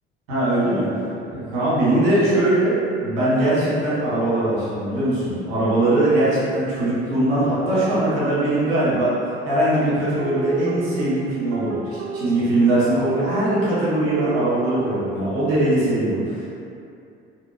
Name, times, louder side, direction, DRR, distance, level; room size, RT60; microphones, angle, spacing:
voice 1, 0.3-0.9 1.3-9.1 9.4-16.5, right 1 dB, 75° right, -10 dB, 1.2 m, -21 dB
sound 1, 10.2-15.0, right 2 dB, 50° right, 0.4 m, -33 dB
2.8 x 2.7 x 2.4 m, 2.6 s
hypercardioid pair, 60°, 30 cm